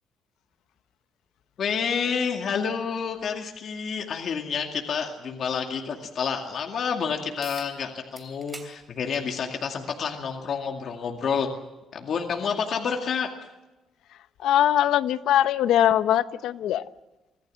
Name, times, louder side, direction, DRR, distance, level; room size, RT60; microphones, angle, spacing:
voice 1, 1.6-11.5 11.9-13.3, left 6 dB, 50° left, 2 dB, 2.2 m, -29 dB
sound 1, 7.4-7.7 8.2-8.7 9.1-9.3 10.4-10.5 15.4-15.5, right 3 dB, 20° right, 3.4 m, -43 dB
voice 2, 14.4-16.9, left 11 dB, 85° left, 13 dB, 0.9 m, -21 dB
25.0 x 17.5 x 7.6 m, 1.0 s
cardioid pair, 155°, 0 cm